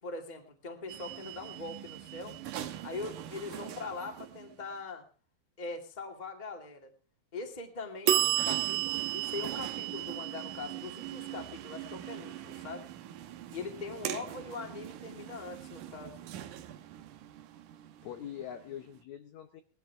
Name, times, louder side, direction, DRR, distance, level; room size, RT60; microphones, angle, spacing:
voice 1, 0.0-2.4 2.8-5.0 5.6-6.9 7.3-12.9 13.5-16.2, left 3 dB, 15° left, 3 dB, 1.9 m, -42 dB
sound 1, 0.9-4.6 8.1-18.7, right 13 dB, 70° right, 2.3 m, -36 dB
voice 2, 18.0-19.6, left 10 dB, 70° left, 7 dB, 1.9 m, -43 dB
19.0 x 13.5 x 3.5 m, 0.35 s
omnidirectional pair, 4.1 m